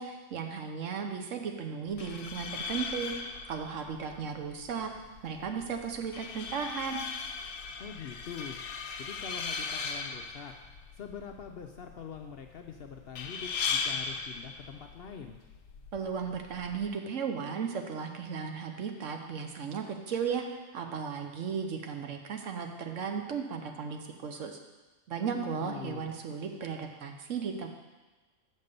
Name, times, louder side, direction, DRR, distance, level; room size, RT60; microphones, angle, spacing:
voice 1, 0.0-3.1 3.5-4.9 5.2-7.0 15.9-20.4 20.7-24.6 25.1-27.7, right 6 dB, 75° right, 4 dB, 1.2 m, -35 dB
sound 1, 1.9-16.9, left 5 dB, 85° left, 1.0 m, -38 dB
voice 2, 7.8-8.6 9.0-10.5 11.0-15.4 25.3-26.1, left 7 dB, 60° left, 4 dB, 0.6 m, -44 dB
6.4 x 5.4 x 6.7 m, 1.2 s
omnidirectional pair, 1.3 m